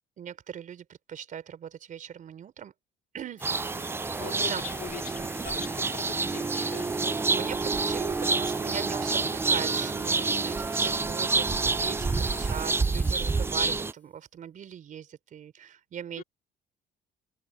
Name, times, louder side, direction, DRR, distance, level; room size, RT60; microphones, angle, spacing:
voice 1, 0.2-2.7 3.1-3.5 4.2-4.6 7.3-16.2, right 9 dB, 50° right, 4.3 m, -40 dB
sound 1, 3.4-13.9, left 1 dB, 10° left, 3.9 m, -46 dB
sound 2, 3.4-13.9, right 4 dB, 15° right, 0.4 m, -28 dB
voice 2, 4.2-7.0 12.1-12.4 16.2-16.3, left 10 dB, 55° left, 4.5 m, -42 dB
cardioid pair, 110°, 17 cm